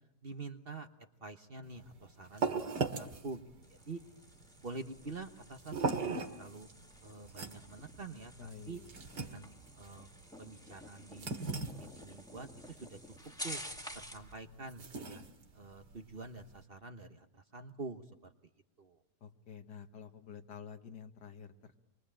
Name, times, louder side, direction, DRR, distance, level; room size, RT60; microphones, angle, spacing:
voice 1, 0.2-0.9 1.2-3.4 3.7-4.0 4.6-6.7 7.0-8.8 9.1-10.1 10.4-11.4 11.8-13.0 13.4-13.6 13.9-15.2 15.5-18.3 18.8-19.0, right 3 dB, 40° right, 7 dB, 1.3 m, -47 dB
sound 1, 1.6-16.6, right 4 dB, 85° right, 2.7 m, -41 dB
sound 2, 3.6-14.3, equal, ahead, 1.9 m, -51 dB
voice 2, 8.4-9.4 19.2-21.8, left 7 dB, 80° left, 6 dB, 2.2 m, -50 dB
27.0 x 23.0 x 8.8 m, 0.84 s
omnidirectional pair, 1.8 m